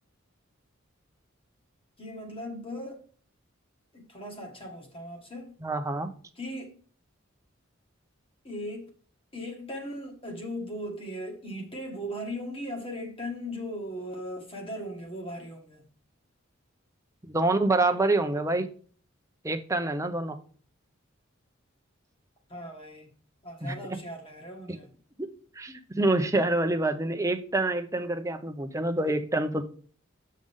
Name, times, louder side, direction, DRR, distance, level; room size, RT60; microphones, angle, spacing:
voice 1, 2.0-3.0 3.9-5.5 6.4-6.8 8.4-8.9 9.3-15.8 22.5-23.2 23.4-24.9, equal, 25° left, 1.9 m, -38 dB
voice 2, 5.6-6.1 17.2-18.7 19.4-20.4 23.6-23.7 25.2-29.6, right 2 dB, 15° right, 0.7 m, -27 dB
7.8 x 6.5 x 3.7 m
head